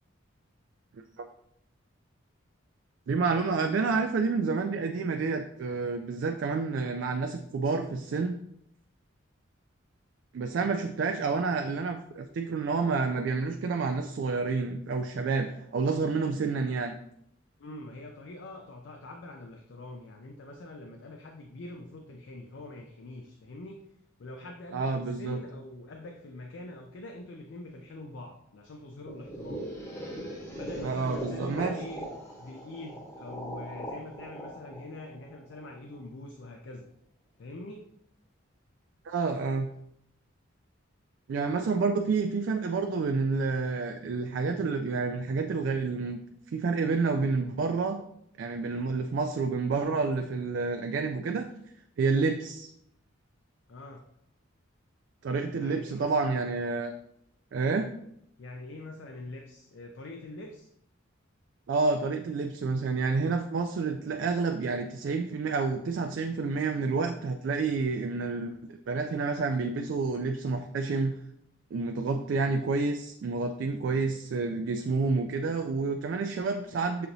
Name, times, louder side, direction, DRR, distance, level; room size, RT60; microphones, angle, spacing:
voice 1, 3.1-8.4 10.3-16.9 24.7-25.4 30.8-31.7 39.1-39.7 41.3-46.2 46.5-48.0 48.4-51.5 52.0-52.7 55.2-56.9 57.5-57.9 61.7-68.6 68.9-71.1 71.7-77.1, right 4 dB, 60° right, 5 dB, 0.3 m, -29 dB
voice 2, 17.6-23.8 24.2-29.7 30.5-36.9 37.4-37.9 53.7-54.0 55.6-56.1 58.4-60.7 72.3-72.5, left 2 dB, 60° left, 3 dB, 0.4 m, -44 dB
sound 1, 29.1-35.9, right 1 dB, 10° left, 0.8 m, -40 dB
6.7 x 2.9 x 2.6 m, 0.73 s
head